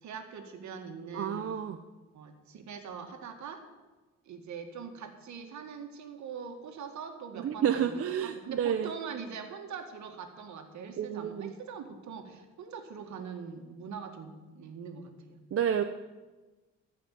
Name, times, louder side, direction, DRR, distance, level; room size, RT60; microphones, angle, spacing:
voice 1, 0.0-1.5 2.1-3.6 4.3-15.4, right 6 dB, 70° right, 5 dB, 1.9 m, -43 dB
voice 2, 1.1-1.8 7.4-8.9 11.0-11.5 15.5-15.8, right 8 dB, 50° right, 7 dB, 0.7 m, -30 dB
15.0 x 5.7 x 8.4 m, 1.2 s
cardioid pair, 90°, 30 cm